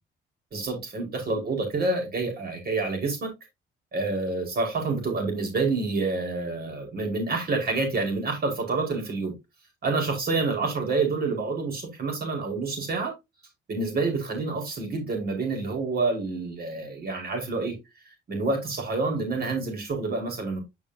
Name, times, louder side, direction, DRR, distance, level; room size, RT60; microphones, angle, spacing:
voice 1, 0.5-3.3 3.9-9.3 9.8-13.1 13.7-17.8 18.3-20.6, right 3 dB, 50° right, 4.9 m, -28 dB
9.2 x 6.2 x 2.8 m
cardioid pair, 90°, 20 cm